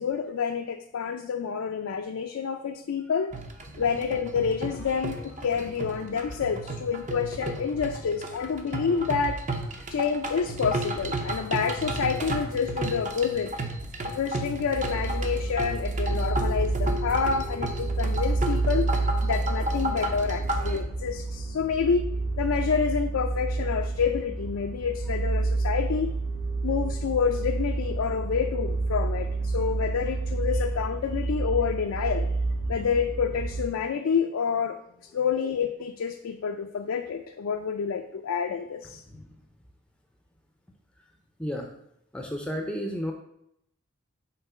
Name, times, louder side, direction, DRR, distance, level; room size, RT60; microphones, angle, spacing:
voice 1, 0.0-3.4 3.8-9.4 9.9-13.6 14.0-18.9 19.2-22.1 22.4-26.1 26.6-32.3 32.7-34.8 35.1-39.0, left 6 dB, 70° left, 5 dB, 0.4 m, -28 dB
sound 1, 3.3-20.8, right 1 dB, 35° right, 0.7 m, -33 dB
sound 2, 14.7-33.6, right 3 dB, 80° right, 1.1 m, -29 dB
voice 2, 41.4-41.7 42.1-43.1, equal, 5° left, 2 dB, 0.5 m, -33 dB
5.8 x 3.8 x 5.5 m, 0.77 s
head